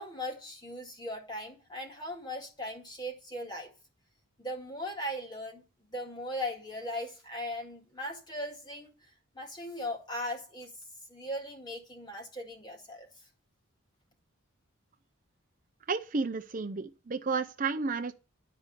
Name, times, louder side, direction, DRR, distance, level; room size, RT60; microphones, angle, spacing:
voice 1, 0.0-3.7 4.4-8.9 9.3-10.7 11.1-13.1, left 1 dB, 20° left, 2.1 m, -38 dB
voice 2, 15.9-18.1, right 4 dB, 40° right, 0.5 m, -32 dB
11.5 x 5.1 x 7.5 m
head